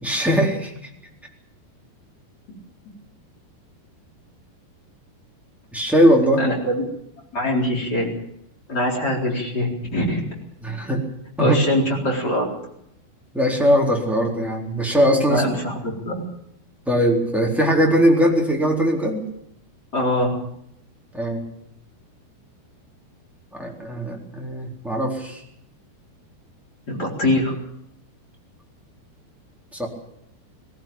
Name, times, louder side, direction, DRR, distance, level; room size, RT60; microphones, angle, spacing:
voice 1, 0.0-0.9 5.7-6.4 10.6-11.0 11.4-11.6 13.3-15.4 16.9-19.2 21.1-21.4 23.5-25.4 29.7-29.9, equal, ahead, -1 dB, 3.3 m, -20 dB
voice 2, 6.4-6.8 7.3-8.1 8.7-10.2 11.4-12.5 15.3-16.1 19.9-20.3 26.9-27.6, left 1 dB, 25° left, -1 dB, 4.3 m, -23 dB
20.5 x 16.0 x 8.9 m, 0.75 s
omnidirectional pair, 5.0 m